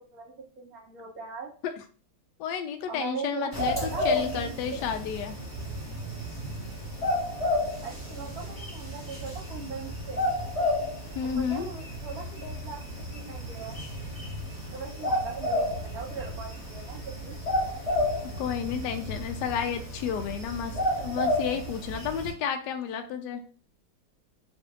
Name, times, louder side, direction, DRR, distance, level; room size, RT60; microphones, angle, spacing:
voice 1, 0.1-1.5 2.9-4.9 7.8-10.2 11.3-12.8 13.1-13.8 14.7-17.3, right 5 dB, 55° right, -1 dB, 1.3 m, -39 dB
voice 2, 2.4-5.4 11.1-11.7 18.4-23.4, left 8 dB, 70° left, 6 dB, 1.0 m, -31 dB
sound 1, 3.5-22.3, left 1 dB, 10° left, 1.2 m, -32 dB
3.3 x 2.6 x 3.7 m, 0.40 s
omnidirectional pair, 2.2 m